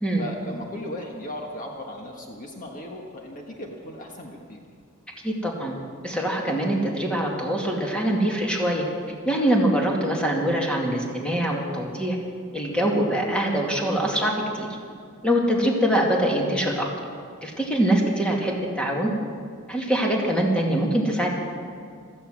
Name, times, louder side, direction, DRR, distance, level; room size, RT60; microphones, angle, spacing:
voice 1, 0.2-4.6, left 1 dB, 40° left, 1 dB, 1.5 m, -36 dB
voice 2, 5.2-5.7 6.0-8.9 9.3-12.2 12.5-14.7 15.2-16.9 17.4-19.1 19.7-21.3, right 1 dB, 5° left, -2 dB, 2.2 m, -23 dB
15.5 x 14.0 x 6.3 m, 2.3 s
head